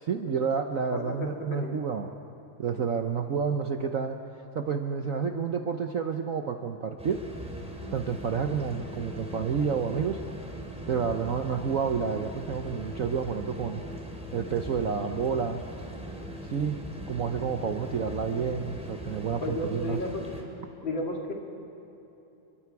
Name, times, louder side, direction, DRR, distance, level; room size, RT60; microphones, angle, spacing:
voice 1, 0.0-2.1 2.6-4.2 4.5-7.2 7.9-10.2 10.9-13.8 14.3-15.6 16.4-16.8 17.1-20.0, right 6 dB, 60° right, 5 dB, 0.9 m, -29 dB
voice 2, 0.9-1.8 17.6-17.8 19.4-20.3 20.8-21.3, left 1 dB, 65° left, 0 dB, 3.1 m, -33 dB
sound 1, 7.0-20.4, equal, 5° right, 2.7 m, -40 dB
30.0 x 23.0 x 4.7 m, 3.0 s
omnidirectional pair, 2.3 m